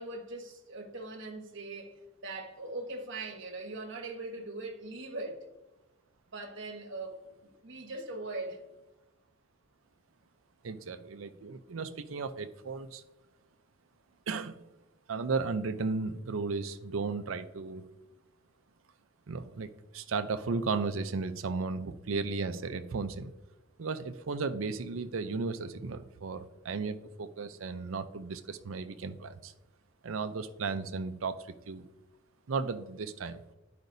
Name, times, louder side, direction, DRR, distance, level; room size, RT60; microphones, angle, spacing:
voice 1, 0.0-2.0 2.2-5.4 6.3-8.6, right 2 dB, 65° right, 1.3 m, -41 dB
voice 2, 10.6-13.0 14.3-14.6 15.1-17.8 19.3-23.3 23.8-29.5 30.0-31.8 32.5-33.5, right 4 dB, 90° right, 0.6 m, -35 dB
12.0 x 5.1 x 2.7 m
head